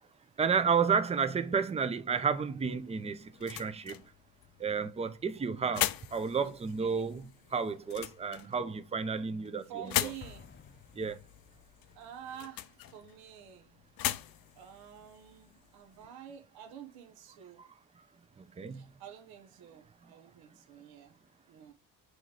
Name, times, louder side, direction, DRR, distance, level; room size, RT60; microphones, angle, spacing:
voice 1, 0.4-3.9 4.6-10.1 11.0-11.2 18.6-18.8, right 6 dB, 15° right, 0.5 m, -31 dB
sound 1, 2.6-16.1, left 14 dB, 70° left, 0.6 m, -40 dB
voice 2, 9.7-10.4 11.9-13.7 14.5-17.6 18.7-21.1 21.5-21.7, right 10 dB, 80° right, 1.1 m, -49 dB
Explosion, 10.2-11.8, left 5 dB, 30° left, 0.8 m, -54 dB
6.2 x 3.1 x 5.0 m
cardioid pair, 110°, 36 cm